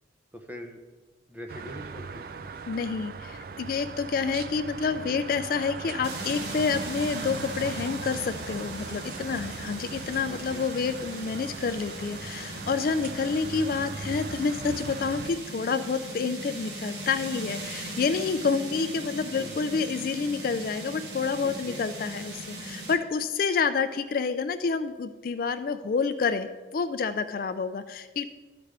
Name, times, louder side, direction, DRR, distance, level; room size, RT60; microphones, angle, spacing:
voice 1, 0.3-0.8 1.3-2.3 9.2-9.5 10.3-10.6 19.4-19.6 21.4-21.8, equal, 10° right, 3 dB, 0.6 m, -43 dB
sound 1, 1.5-15.3, right 4 dB, 50° right, 0.4 m, -39 dB
voice 2, 2.7-28.3, left 5 dB, 50° left, 10 dB, 0.3 m, -28 dB
sound 2, 6.0-23.0, right 1 dB, 65° right, 1.1 m, -39 dB
13.0 x 5.1 x 3.3 m, 1.3 s
head